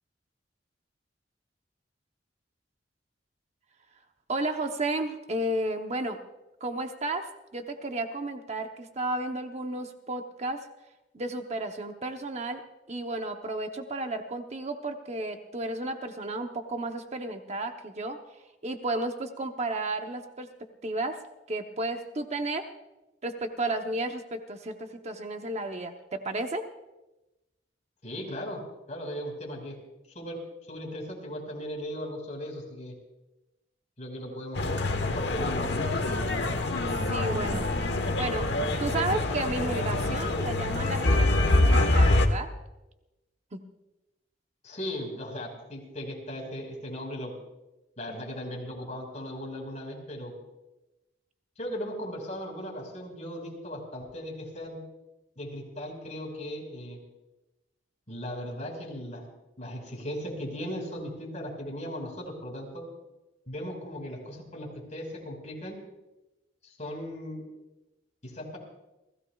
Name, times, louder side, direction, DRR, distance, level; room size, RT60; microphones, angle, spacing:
voice 1, 4.3-6.2 6.6-10.7 11.1-12.6 12.9-20.5 20.8-21.2 21.5-22.7 23.2-26.6 36.9-37.7 38.2-38.5 38.8-42.5 43.5-43.6, right 2 dB, 35° right, 5 dB, 0.9 m, -33 dB
voice 2, 28.0-28.6 28.9-29.8 30.1-30.4 30.7-32.9 34.0-34.7 35.0-35.8 44.6-47.3 48.0-50.3 51.6-54.8 55.4-57.0 58.1-59.2 59.6-62.8 63.5-65.8 66.6-67.4 68.2-68.6, equal, 40° left, -1 dB, 4.9 m, -37 dB
sound 1, 34.6-42.3, left 2 dB, 65° left, 1.2 m, -25 dB
30.0 x 16.0 x 2.4 m, 0.99 s
head